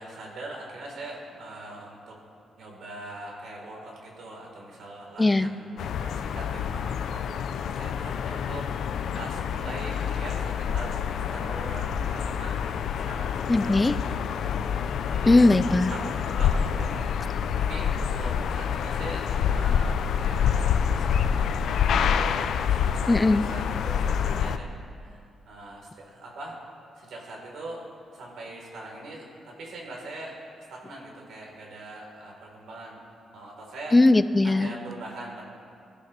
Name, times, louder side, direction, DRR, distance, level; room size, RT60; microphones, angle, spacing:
voice 1, 0.0-2.2 2.6-15.4 15.9-17.2 17.7-26.6 27.0-27.8 28.1-30.3 30.7-33.0 33.3-34.0 34.4-35.5, right 2 dB, 70° right, -2 dB, 3.8 m, -42 dB
voice 2, 5.2-5.5 13.5-14.0 15.3-15.9 23.1-23.4 33.9-34.7, left 2 dB, 15° left, 13 dB, 0.4 m, -19 dB
sound 1, 5.8-24.6, left 7 dB, 70° left, 0.5 m, -27 dB
24.0 x 13.5 x 3.3 m, 2.5 s
wide cardioid pair, 165°, 0 cm